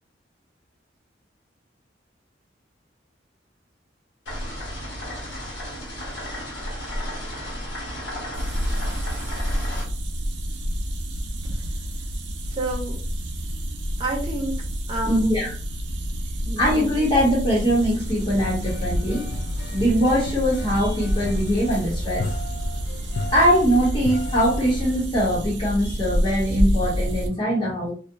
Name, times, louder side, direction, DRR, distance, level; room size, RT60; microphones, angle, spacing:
sound 1, 4.3-9.8, equal, 90° left, 1.2 m, -33 dB
sound 2, 8.3-27.3, equal, 75° right, 0.5 m, -28 dB
voice 1, 12.5-13.0 14.0-15.5 16.5-16.6, right 2 dB, 30° right, 0 dB, 0.6 m, -30 dB
voice 2, 15.0-15.5 16.6-19.2 19.7-22.3 23.3-27.9, equal, 30° left, -6 dB, 0.8 m, -22 dB
sound 3, 17.6-25.0, left 2 dB, 65° left, 0.3 m, -35 dB
2.5 x 2.1 x 2.6 m, 0.40 s
head